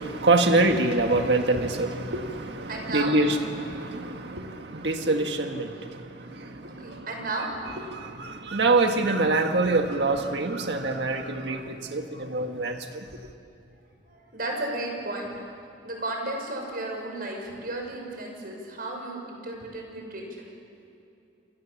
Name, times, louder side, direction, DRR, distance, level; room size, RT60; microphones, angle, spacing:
voice 1, 0.0-5.9 6.6-7.0 7.9-13.0, right 2 dB, 70° right, 5 dB, 1.7 m, -25 dB
voice 2, 2.7-3.2 6.4-7.5 14.1-15.4 15.8-20.5, right 2 dB, 55° right, 1 dB, 6.4 m, -34 dB
28.0 x 27.0 x 7.3 m, 2.6 s
head